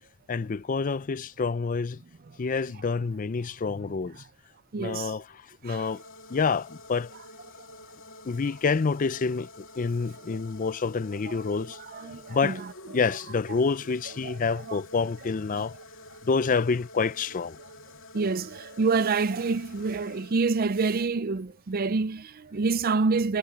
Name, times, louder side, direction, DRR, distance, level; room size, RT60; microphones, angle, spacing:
voice 1, 0.3-2.0 2.4-4.2 4.8-6.0 6.3-7.1 8.2-11.8 12.3-12.6 12.9-15.8 16.2-17.6, left 4 dB, 40° left, 0.5 m, -28 dB
voice 2, 4.7-5.1 5.7-5.8 11.9-12.6 14.2-14.3 14.7-14.8 15.5-15.6 18.1-23.4, right 4 dB, 45° right, 0.5 m, -27 dB
sound 1, 5.7-20.9, left 1 dB, 70° left, 2.5 m, -48 dB
head